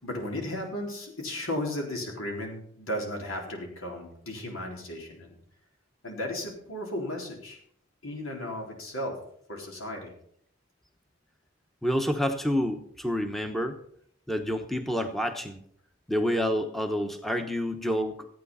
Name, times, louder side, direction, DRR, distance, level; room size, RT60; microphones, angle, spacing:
voice 1, 0.0-5.3 6.0-7.6 8.0-9.2 9.5-10.1, left 1 dB, 90° left, 1 dB, 4.0 m, -35 dB
voice 2, 11.8-13.8 14.3-15.6 16.1-18.3, equal, ahead, 6 dB, 0.9 m, -28 dB
14.5 x 9.1 x 5.6 m, 0.66 s
head